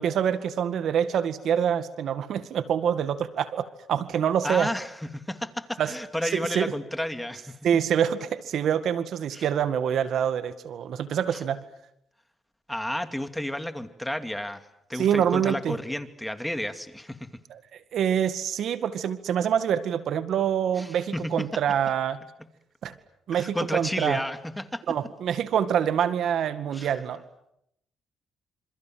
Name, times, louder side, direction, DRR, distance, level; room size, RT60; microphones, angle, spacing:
voice 1, 0.0-4.7 5.8-5.9 6.3-6.7 7.6-11.6 14.9-15.8 17.5-22.2 22.8-22.9 23.3-24.2 24.9-27.2, right 9 dB, 70° right, 11 dB, 2.0 m, -26 dB
voice 2, 4.4-7.6 9.3-9.5 11.3-11.4 12.7-17.3 20.8-21.5 23.3-25.0 26.7-26.9, left 1 dB, 5° left, 8 dB, 2.6 m, -32 dB
28.0 x 27.5 x 7.7 m, 0.78 s
cardioid pair, 90°, 0 cm